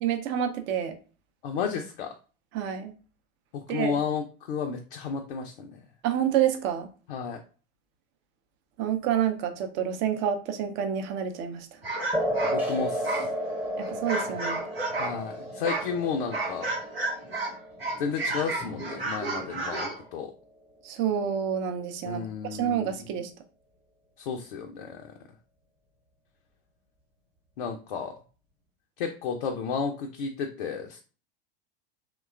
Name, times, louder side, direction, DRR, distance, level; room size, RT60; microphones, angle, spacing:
voice 1, 0.0-0.9 2.5-2.9 3.7-4.0 6.0-6.9 8.8-11.7 13.8-14.6 20.8-22.2 22.5-23.3, right 9 dB, 40° right, 7 dB, 0.5 m, -28 dB
voice 2, 1.4-2.1 3.5-5.8 7.1-7.4 12.4-13.3 15.0-16.7 18.0-20.3 22.0-22.9 24.2-25.0 27.6-28.1 29.0-31.0, left 6 dB, 65° left, 3 dB, 0.4 m, -32 dB
sound 1, 11.8-15.2 15.6-17.5 17.8-20.0, right 2 dB, 90° right, 0.8 m, -32 dB
sound 2, 12.1-19.2, equal, 5° right, 0.6 m, -33 dB
2.9 x 2.2 x 2.3 m, 0.36 s
figure-of-eight pair, 80°, 29 cm